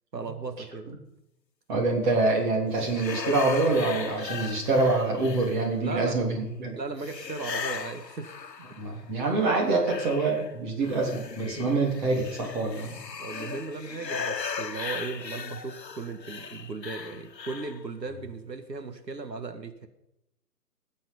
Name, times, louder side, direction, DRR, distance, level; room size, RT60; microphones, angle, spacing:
voice 1, 0.1-1.0 5.8-6.4 6.7-8.3 11.7-11.9 13.2-19.9, right 4 dB, 90° right, 7 dB, 1.9 m, -37 dB
voice 2, 1.7-6.8 8.8-13.0, right 3 dB, 30° right, -1 dB, 3.5 m, -25 dB
sound 1, 2.7-5.9 7.0-9.0 9.4-17.8, left 6 dB, 80° left, 1.2 m, -38 dB
20.5 x 7.6 x 5.4 m, 0.86 s
figure-of-eight pair, 145°, 49 cm